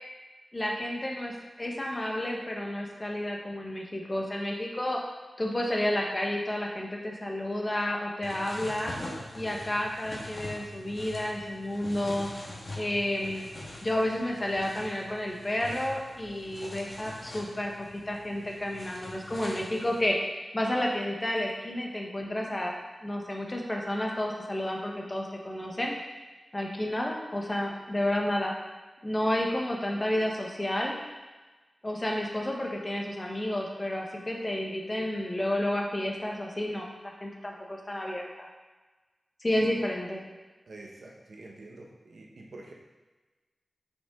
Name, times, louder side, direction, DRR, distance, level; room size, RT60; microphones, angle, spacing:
voice 1, 0.5-5.0 5.4-8.9 9.3-12.3 12.8-13.5 13.8-22.7 23.0-26.0 26.5-28.5 29.0-31.0 31.8-38.5 39.4-40.2, left 1 dB, 25° left, 0 dB, 1.0 m, -31 dB
sound 1, 8.2-20.1, left 1 dB, 50° left, 1.5 m, -44 dB
voice 2, 40.7-42.7, right 2 dB, 70° right, -1 dB, 1.0 m, -46 dB
6.0 x 5.2 x 3.6 m, 1.2 s
wide cardioid pair, 75°, 0 cm